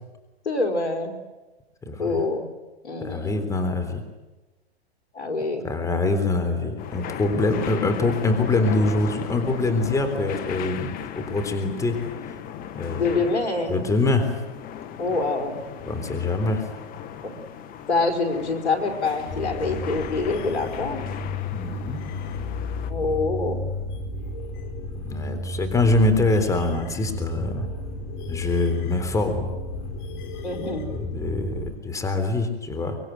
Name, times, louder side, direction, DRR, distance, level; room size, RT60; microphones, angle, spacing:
voice 1, 0.4-1.2 2.0-2.5 2.8-3.4 5.1-5.7 13.0-13.8 15.0-15.6 17.2-17.4 17.9-21.0 22.9-23.7 30.4-30.9, left 3 dB, 85° left, 5 dB, 4.7 m, -26 dB
voice 2, 1.9-2.2 3.0-4.0 5.6-12.0 12.8-13.1 13.7-14.3 15.9-16.6 21.5-22.0 25.0-27.7 28.3-29.5 30.8-33.0, left 2 dB, 10° left, 6 dB, 3.7 m, -24 dB
sound 1, 6.8-22.9, left 9 dB, 25° left, 1.6 m, -37 dB
sound 2, 19.3-31.8, left 2 dB, 45° left, 4.8 m, -33 dB
24.5 x 22.5 x 9.3 m, 1.1 s
hypercardioid pair, 130°, 33 cm